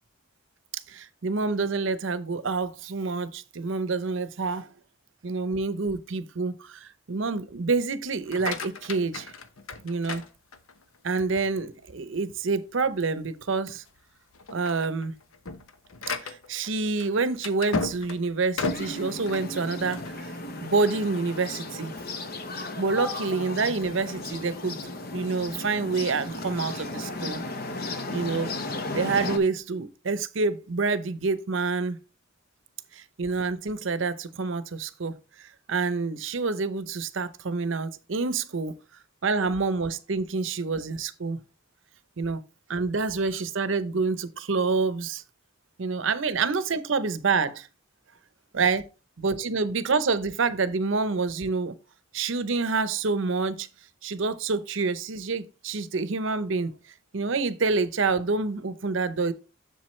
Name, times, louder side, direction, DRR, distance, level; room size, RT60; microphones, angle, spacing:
voice 1, 0.9-4.7 5.2-9.3 9.8-10.2 11.0-13.8 14.5-15.1 16.2-20.3 20.6-21.9 22.8-24.8 25.1-27.4 28.1-28.5 28.9-32.0 32.9-38.8 39.2-41.4 42.2-42.4 42.7-45.2 45.8-47.7 48.5-48.9 49.2-51.8 52.1-53.7 54.0-56.7 57.1-59.3, right 4 dB, 65° right, 0.7 m, -27 dB
sound 1, 8.1-11.0 11.5-11.9 12.4-12.5 12.9-13.0 13.7-14.0 14.3-20.2, left 3 dB, 80° left, 0.9 m, -35 dB
sound 2, 18.7-29.4, left 2 dB, 45° left, 0.8 m, -35 dB
7.5 x 6.9 x 3.1 m
head